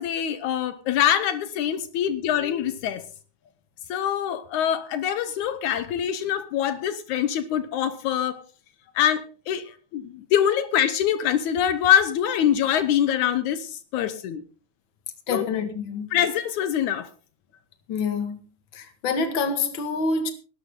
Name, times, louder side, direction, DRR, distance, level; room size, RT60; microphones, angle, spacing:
voice 1, 0.0-3.0 3.9-8.4 9.0-14.4 15.3-15.4 16.1-17.1, left 10 dB, 80° left, 2.3 m, -24 dB
voice 2, 15.3-16.1 17.9-18.4 18.7-20.3, left 4 dB, 45° left, 2.3 m, -26 dB
18.5 x 12.5 x 3.7 m
omnidirectional pair, 3.5 m